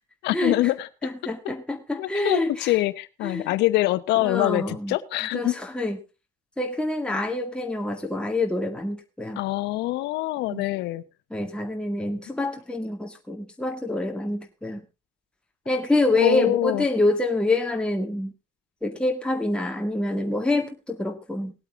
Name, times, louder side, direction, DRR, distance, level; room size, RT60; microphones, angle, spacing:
voice 1, 0.2-0.9 2.0-5.6 9.4-11.0 16.2-16.8, left 17 dB, 75° left, 15 dB, 0.9 m, -24 dB
voice 2, 1.0-2.7 3.2-3.5 4.2-5.0 5.3-6.0 6.6-9.4 10.5-10.6 11.3-14.8 15.7-18.3 18.8-21.5, left 2 dB, 5° left, 2 dB, 1.9 m, -26 dB
19.0 x 8.3 x 3.6 m, 0.28 s
supercardioid pair, 75°, 18 cm